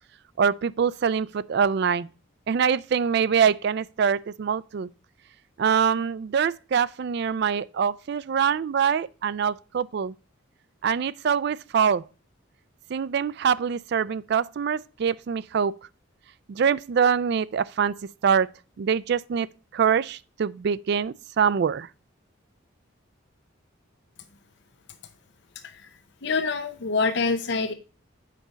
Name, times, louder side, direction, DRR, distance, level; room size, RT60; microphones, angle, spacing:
voice 1, 0.4-2.1 2.5-4.9 5.6-10.1 10.8-12.0 12.9-15.7 16.5-17.9 18.2-18.5 18.8-21.9, right 7 dB, 50° right, 0.3 m, -24 dB
voice 2, 26.2-27.7, left 4 dB, 55° left, 0.6 m, -25 dB
8.2 x 5.1 x 4.0 m
head